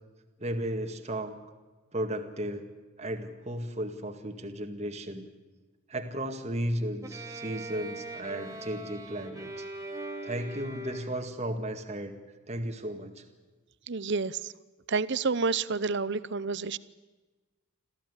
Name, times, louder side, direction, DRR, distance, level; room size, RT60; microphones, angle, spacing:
voice 1, 0.4-1.4 1.9-2.7 3.0-5.3 5.9-9.7 10.2-12.1 12.5-13.2, right 1 dB, 30° right, 5 dB, 2.1 m, -34 dB
Bowed string instrument, 7.0-11.4, right 2 dB, 15° right, 2.2 m, -41 dB
voice 2, 13.9-14.5 14.9-16.8, right 4 dB, 55° right, 17 dB, 0.8 m, -29 dB
27.0 x 15.0 x 9.9 m, 1.3 s
head